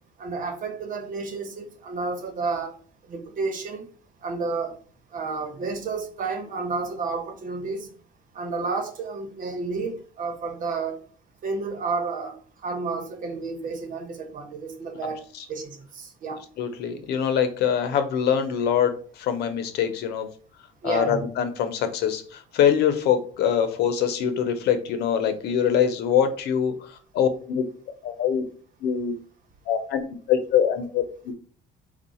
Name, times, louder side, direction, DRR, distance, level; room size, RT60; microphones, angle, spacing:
voice 1, 0.2-2.7 3.1-3.9 4.2-4.8 5.1-7.9 8.3-11.0 11.4-16.4 20.8-21.2, right 4 dB, 55° right, 1.1 m, -31 dB
voice 2, 16.6-20.3 20.8-27.6 28.0-28.4 28.8-29.1 29.7-31.0, left 8 dB, 75° left, 0.8 m, -24 dB
4.5 x 2.4 x 4.2 m
cardioid pair, 110°, 17 cm